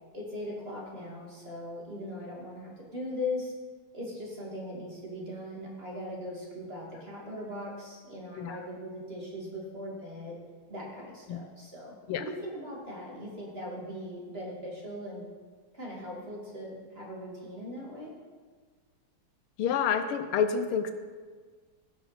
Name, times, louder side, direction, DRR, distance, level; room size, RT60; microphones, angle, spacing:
voice 1, 0.1-3.5 3.9-10.4 10.7-15.3 15.7-18.1, left 1 dB, 30° right, -3 dB, 2.4 m, -39 dB
voice 2, 19.6-20.9, left 7 dB, 80° left, 9 dB, 1.6 m, -28 dB
17.0 x 6.2 x 5.8 m, 1.5 s
omnidirectional pair, 2.4 m